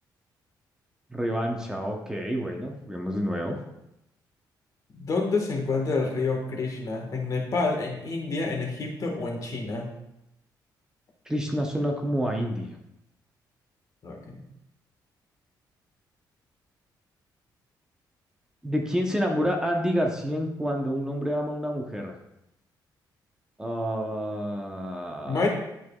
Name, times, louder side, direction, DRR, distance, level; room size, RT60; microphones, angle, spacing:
voice 1, 1.1-3.6 11.3-12.8 18.6-22.1 23.6-25.5, equal, 10° right, 1 dB, 0.9 m, -28 dB
voice 2, 4.9-9.9 14.0-14.4 25.3-25.5, left 3 dB, 50° left, 1 dB, 1.5 m, -28 dB
10.5 x 4.7 x 2.4 m, 0.84 s
cardioid pair, 105°, 8 cm